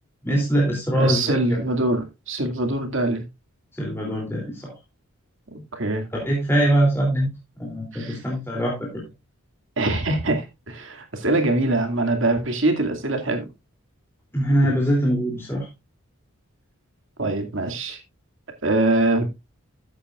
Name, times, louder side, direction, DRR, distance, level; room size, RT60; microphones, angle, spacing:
voice 1, 0.2-1.3 3.8-4.7 6.1-7.3 7.6-8.9 14.3-15.7, right 1 dB, 10° left, 2.9 m, -22 dB
voice 2, 0.9-3.2 5.5-6.0 7.9-8.2 9.8-13.5 17.2-18.0 18.6-19.3, right 2 dB, 60° right, 2.3 m, -23 dB
14.0 x 8.6 x 2.4 m
head